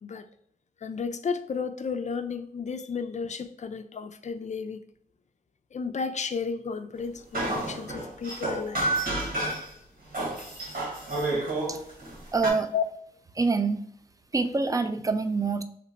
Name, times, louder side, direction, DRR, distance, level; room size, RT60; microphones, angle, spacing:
voice 1, 0.8-4.8 5.7-8.8 10.4-10.5 12.7-12.8, left 5 dB, 45° left, 0.4 m, -33 dB
sound 1, 7.3-9.7 10.1-12.5, right 2 dB, 65° right, 1.4 m, -30 dB
voice 2, 12.3-12.7 13.3-13.8 14.3-15.6, right 4 dB, 20° right, 0.4 m, -25 dB
2.9 x 2.1 x 3.9 m
cardioid pair, 45°, 16 cm